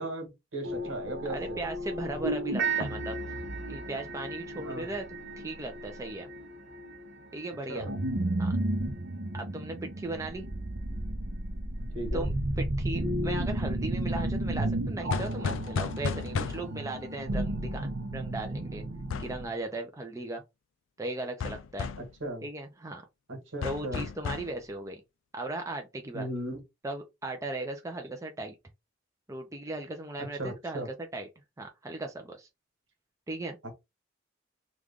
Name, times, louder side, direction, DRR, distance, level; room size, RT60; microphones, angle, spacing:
voice 1, 0.0-1.6 4.5-4.9 7.7-7.9 11.9-12.2 22.2-22.4 23.3-24.0 26.1-26.6 30.4-30.9, right 1 dB, 75° right, 1.5 m, -36 dB
sound 1, 0.6-7.1 7.7-19.5, right 1 dB, 60° right, 0.7 m, -33 dB
voice 2, 1.3-3.2 3.7-5.1 5.4-6.3 7.3-7.9 8.4-8.5 9.3-10.5 12.1-18.8 19.2-20.4 21.0-21.9 22.4-23.0 23.6-25.0 25.3-26.3 26.8-28.5 29.3-31.3 31.6-32.5 33.3-33.6, right 2 dB, 15° right, 0.5 m, -37 dB
sound 2, 15.1-16.9 19.1-19.4 21.4-22.1 23.6-24.6, left 5 dB, 70° left, 0.3 m, -34 dB
3.1 x 2.4 x 3.6 m
head